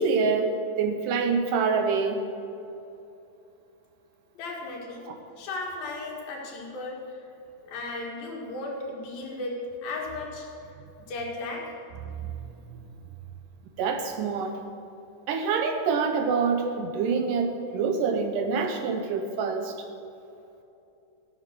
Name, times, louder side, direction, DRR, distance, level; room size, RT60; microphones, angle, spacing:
voice 1, 0.0-2.2 5.1-5.2 12.2-12.5 13.8-14.6 15.3-19.7, right 5 dB, 75° right, 5 dB, 2.2 m, -26 dB
voice 2, 4.4-5.1 5.4-7.2 7.6-10.5 11.1-11.7, left 2 dB, 75° left, -1 dB, 3.8 m, -35 dB
15.5 x 7.9 x 6.8 m, 2.8 s
omnidirectional pair, 4.2 m